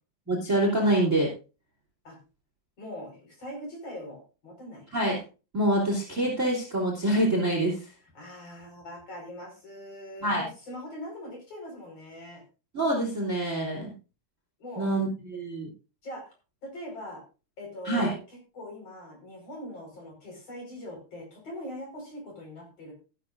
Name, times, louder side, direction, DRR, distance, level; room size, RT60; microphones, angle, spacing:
voice 1, 0.3-1.3 4.9-5.2 5.5-7.9 10.2-10.4 12.7-13.9 14.8-15.7 17.8-18.1, right 1 dB, 20° right, 0 dB, 2.9 m, -26 dB
voice 2, 2.8-4.9 8.1-12.4 14.6-14.9 16.0-16.3 16.6-17.2 17.6-22.9, left 1 dB, 40° left, 1 dB, 5.9 m, -42 dB
14.5 x 12.5 x 2.6 m, 0.32 s
omnidirectional pair, 4.3 m